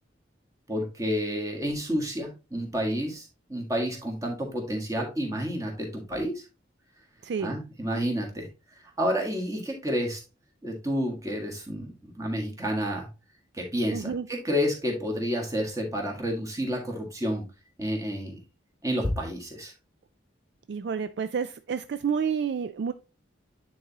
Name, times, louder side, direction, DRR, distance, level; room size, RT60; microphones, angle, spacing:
voice 1, 0.7-6.4 7.4-8.5 9.0-10.2 10.6-13.1 13.5-17.4 17.8-18.4 18.8-19.7, equal, 15° right, 1.6 m, -30 dB
voice 2, 7.2-7.5 13.9-14.3 20.7-22.9, right 6 dB, 60° right, 0.3 m, -29 dB
9.3 x 4.0 x 2.8 m
head